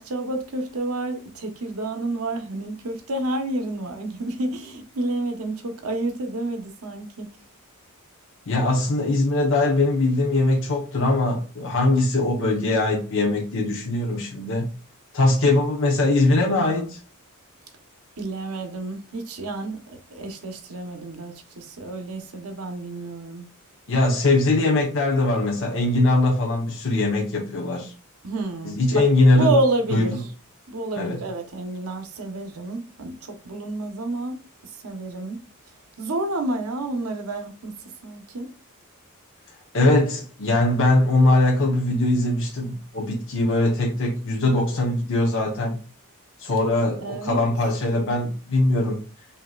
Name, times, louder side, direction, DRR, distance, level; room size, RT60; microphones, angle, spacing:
voice 1, 0.0-7.3 18.2-23.5 28.2-29.0 29.3-30.3 30.7-34.4 34.8-35.4 36.0-37.8 38.0-38.5 47.0-47.4, right 2 dB, 80° right, 0.9 m, -29 dB
voice 2, 8.5-14.7 15.1-17.0 23.9-27.9 28.6-29.5 29.9-30.2 31.0-31.2 39.7-45.8 46.4-49.0, left 2 dB, 60° left, 0.9 m, -21 dB
5.4 x 2.8 x 2.3 m
head